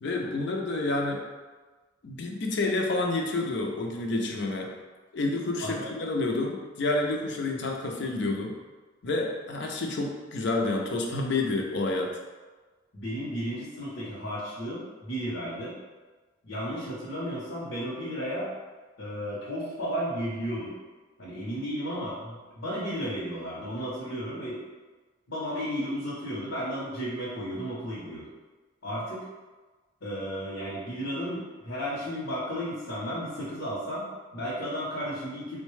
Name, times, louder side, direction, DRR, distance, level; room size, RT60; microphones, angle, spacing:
voice 1, 0.0-1.2 2.0-4.7 5.1-8.5 9.0-12.1, left 2 dB, 60° left, 1 dB, 0.5 m, -29 dB
voice 2, 12.9-15.7 16.4-18.5 19.0-20.7 21.2-24.6 25.3-28.2 28.8-29.3 30.0-35.6, equal, 85° left, -7 dB, 0.8 m, -33 dB
3.7 x 2.1 x 3.1 m, 1.3 s
head